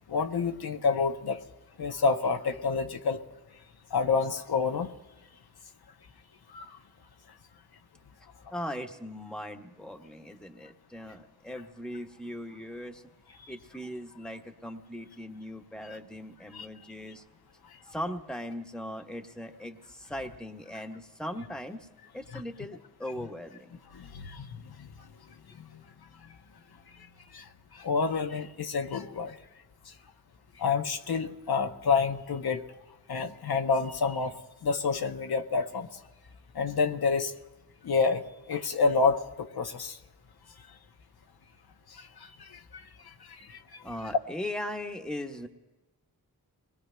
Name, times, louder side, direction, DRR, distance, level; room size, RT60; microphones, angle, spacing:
voice 1, 0.1-1.4 1.8-3.2 3.9-4.9 6.5-6.7 16.5-16.7 22.3-22.4 23.9-24.5 24.8-24.9 27.3-27.4 27.7-29.4 30.6-32.6 33.1-34.4 34.6-35.9 36.5-37.3 37.8-38.2 38.5-40.0 42.0-42.1 42.7-42.8 43.4-43.6, left 4 dB, 75° left, 5 dB, 0.8 m, -28 dB
voice 2, 8.5-13.0 13.5-17.2 17.8-21.9 22.1-23.8 43.8-45.5, left 1 dB, ahead, 3 dB, 1.1 m, -39 dB
26.0 x 20.0 x 2.2 m, 1.1 s
cardioid pair, 50°, 38 cm